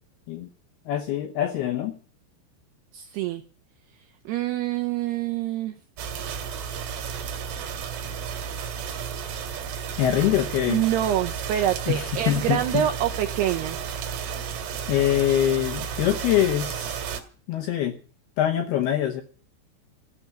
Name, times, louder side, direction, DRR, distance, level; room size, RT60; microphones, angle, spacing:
voice 1, 0.9-2.0 10.0-10.8 11.9-12.8 14.9-17.0 17.5-17.9 18.4-19.2, left 11 dB, 75° left, 4 dB, 2.5 m, -24 dB
voice 2, 2.9-3.4 4.3-5.8 8.0-8.2 10.7-13.8, right 11 dB, 80° right, 7 dB, 2.4 m, -26 dB
sound 1, 6.0-17.2, right 7 dB, 65° right, 3.5 m, -33 dB
14.5 x 7.2 x 10.0 m, 0.43 s
omnidirectional pair, 5.6 m